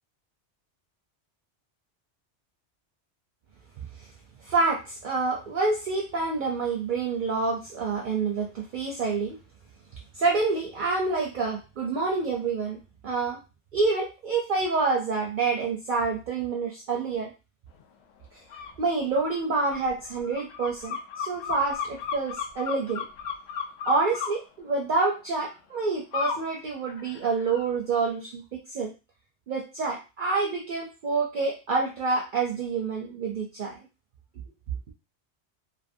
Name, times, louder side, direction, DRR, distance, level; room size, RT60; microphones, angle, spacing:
voice 1, 4.4-9.4 10.1-12.8 13.0-13.4 13.7-17.3 18.8-23.0 23.9-28.4 28.7-28.9 29.5-33.8, right 4 dB, 55° right, 0 dB, 0.6 m, -27 dB
sound 1, 18.5-18.7 19.1-24.3 26.1-26.4 26.9-27.6, left 6 dB, 70° left, 0.8 m, -34 dB
2.6 x 2.5 x 2.5 m, 0.29 s
omnidirectional pair, 1.2 m